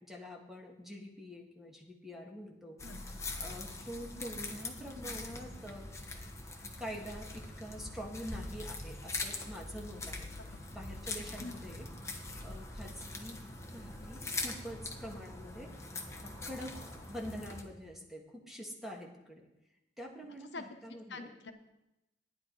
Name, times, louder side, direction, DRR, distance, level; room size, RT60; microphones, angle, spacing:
voice 1, 0.0-2.8 3.4-5.9 6.6-10.3 10.7-11.9 12.4-13.4 13.7-15.7 16.2-16.7 17.1-19.5 20.0-21.3, equal, ahead, -1 dB, 1.8 m, -45 dB
sound 1, 2.8-17.6, left 2 dB, 15° left, 1.3 m, -43 dB
voice 2, 20.9-21.5, left 3 dB, 75° left, 6 dB, 1.0 m, -45 dB
13.0 x 10.0 x 4.6 m, 0.92 s
head